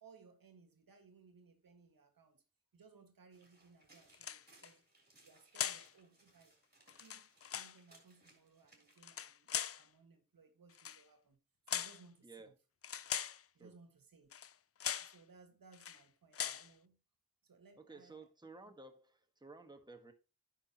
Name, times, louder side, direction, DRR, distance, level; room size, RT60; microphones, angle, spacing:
voice 1, 0.0-2.4 2.7-4.8 5.2-6.5 7.0-11.4 11.7-12.5 13.5-14.3 14.8-17.0 17.4-18.3, right 4 dB, 80° right, 1.6 m, -63 dB
sound 1, 3.3-9.0, right 1 dB, 30° right, 3.2 m, -67 dB
sound 2, 4.1-4.7 5.5-5.9 6.9-7.8 9.0-9.8 10.7-11.0 11.7-12.0 12.8-13.4 14.3-14.5 14.8-15.2 15.7-16.0 16.3-16.7, left 8 dB, 45° left, 0.4 m, -40 dB
voice 2, 17.8-20.1, right 3 dB, 10° right, 1.3 m, -55 dB
9.4 x 6.0 x 2.9 m
cardioid pair, 55°, 34 cm